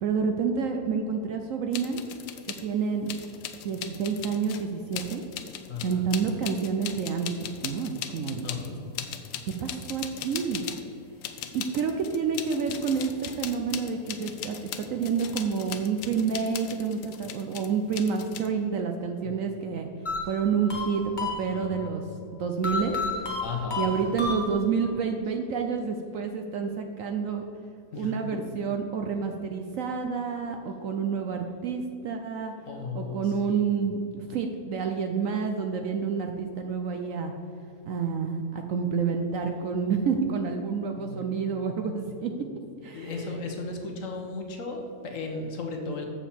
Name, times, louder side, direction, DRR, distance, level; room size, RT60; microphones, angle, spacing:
voice 1, 0.0-2.0 2.5-3.1 3.6-5.2 5.8-8.4 9.6-10.6 11.5-19.9 20.2-22.0 22.3-23.0 23.8-27.4 27.9-32.5 32.9-37.3 37.9-42.3 42.8-43.4, right 6 dB, 70° right, 5 dB, 0.8 m, -29 dB
sound 1, 1.7-2.6 3.1-10.9 11.2-18.5, left 9 dB, 80° left, 1.2 m, -39 dB
voice 2, 5.7-6.1 8.1-9.0 19.2-19.4 21.5-21.7 23.4-24.0 27.9-28.1 30.7-30.8 32.7-33.6 41.0-41.4 42.1-42.4 42.9-46.1, left 3 dB, 55° left, 2 dB, 1.2 m, -36 dB
sound 2, 20.1-21.9 22.6-24.9, left 3 dB, 30° left, 1.1 m, -32 dB
7.1 x 7.0 x 4.3 m, 2.6 s
omnidirectional pair, 1.7 m